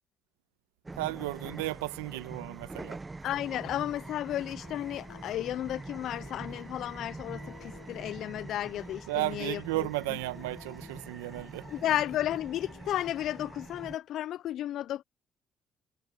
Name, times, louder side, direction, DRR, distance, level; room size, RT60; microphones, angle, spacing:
sound 1, 0.8-14.0, right 3 dB, 25° right, 1.2 m, -45 dB
voice 1, 1.0-3.0 9.1-11.7, right 18 dB, 90° right, 1.4 m, -34 dB
voice 2, 3.2-9.9 11.7-15.0, left 12 dB, 70° left, 0.5 m, -33 dB
sound 2, 3.3-13.9, left 29 dB, 90° left, 6.0 m, -55 dB
hypercardioid pair, 55°, 0 cm